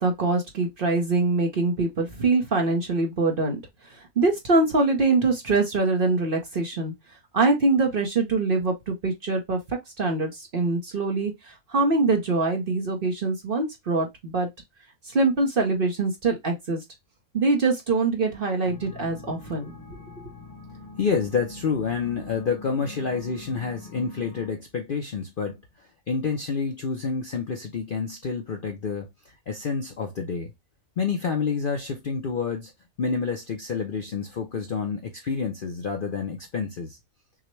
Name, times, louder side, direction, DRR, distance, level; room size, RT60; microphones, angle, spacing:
voice 1, 0.0-3.6 4.2-6.9 7.3-14.5 15.1-16.8 17.3-19.7, right 3 dB, 45° right, 0.8 m, -24 dB
sound 1, 18.6-24.5, left 3 dB, 75° left, 1.8 m, -43 dB
voice 2, 21.0-30.5 31.0-32.7 33.0-37.0, left 5 dB, 55° left, 0.6 m, -28 dB
5.9 x 2.1 x 3.1 m
omnidirectional pair, 1.6 m